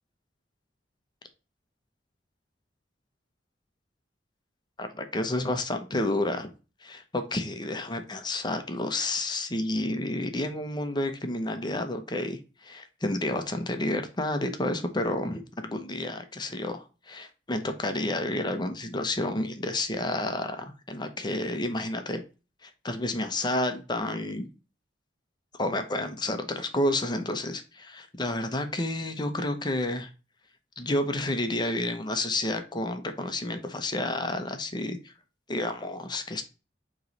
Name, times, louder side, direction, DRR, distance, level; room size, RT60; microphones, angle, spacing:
voice 1, 4.8-6.5 6.8-22.2 22.6-24.5 25.6-30.1 30.8-35.1 35.5-36.4, left 1 dB, 25° left, 7 dB, 0.9 m, -30 dB
7.6 x 3.2 x 4.0 m, 0.32 s
head